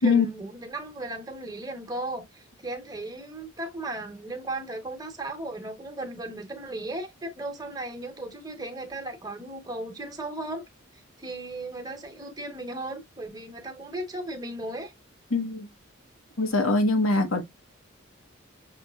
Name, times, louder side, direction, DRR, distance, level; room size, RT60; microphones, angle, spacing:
voice 1, 0.0-10.6 11.2-14.9, right 2 dB, 20° right, 0.9 m, -36 dB
voice 2, 15.3-15.7 16.4-17.4, left 3 dB, 85° left, 1.1 m, -22 dB
5.9 x 2.8 x 2.3 m
head